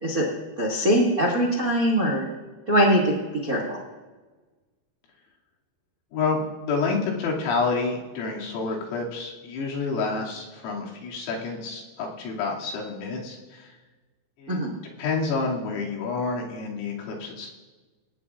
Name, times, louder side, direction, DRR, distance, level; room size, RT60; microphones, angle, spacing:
voice 1, 0.6-2.3 2.7-3.1 3.4-3.8 14.5-14.7, equal, 80° right, -2 dB, 0.8 m, -22 dB
voice 2, 6.1-13.8 14.4-14.6 15.0-17.5, left 4 dB, 80° left, -3 dB, 5.2 m, -29 dB
26.5 x 18.0 x 2.5 m, 1.3 s
omnidirectional pair, 6.0 m